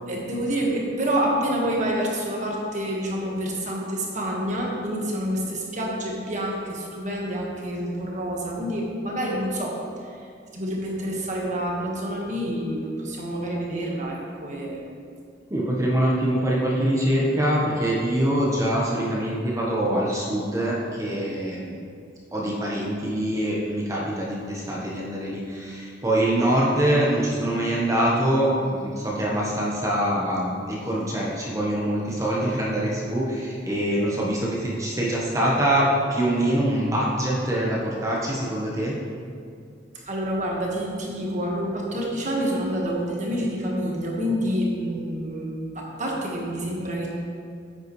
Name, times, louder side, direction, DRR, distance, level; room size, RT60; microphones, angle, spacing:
voice 1, 0.1-9.7 10.5-14.8 39.9-47.2, equal, 40° right, -2 dB, 1.5 m, -28 dB
voice 2, 15.5-21.7 22.3-38.9, right 1 dB, 15° right, -5 dB, 1.1 m, -24 dB
9.7 x 8.0 x 3.2 m, 2.3 s
head